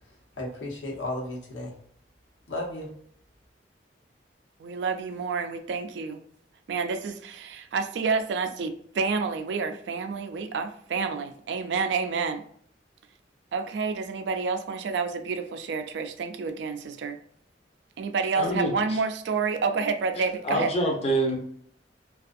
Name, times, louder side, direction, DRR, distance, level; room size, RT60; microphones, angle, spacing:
voice 1, 0.0-1.7 2.5-2.9, left 1 dB, 85° left, -3 dB, 0.9 m, -34 dB
voice 2, 4.6-6.2 6.7-12.4 13.5-17.2 18.0-20.7, right 4 dB, 65° right, 7 dB, 0.3 m, -29 dB
voice 3, 18.3-18.7 20.4-21.4, right 1 dB, 35° left, 1 dB, 0.6 m, -25 dB
2.5 x 2.3 x 2.5 m, 0.63 s
head